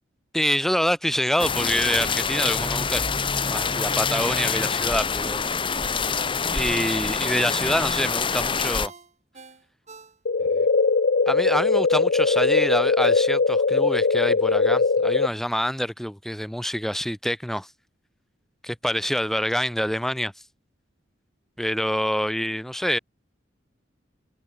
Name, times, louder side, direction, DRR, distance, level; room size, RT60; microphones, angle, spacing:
voice 1, 0.3-3.1 3.5-5.4 6.5-8.9 10.5-10.7 11.3-17.7 18.6-20.3 21.6-23.0, equal, ahead, 1.1 m, -26 dB
sound 1, 1.4-8.9, left 5 dB, 25° left, 1.1 m, -26 dB
Ringtone, 4.1-6.4 6.8-6.9 8.3-10.6 10.9-11.0, right 4 dB, 40° right, 3.9 m, -47 dB
sound 2, 10.3-15.3, left 4 dB, 60° left, 0.6 m, -20 dB
head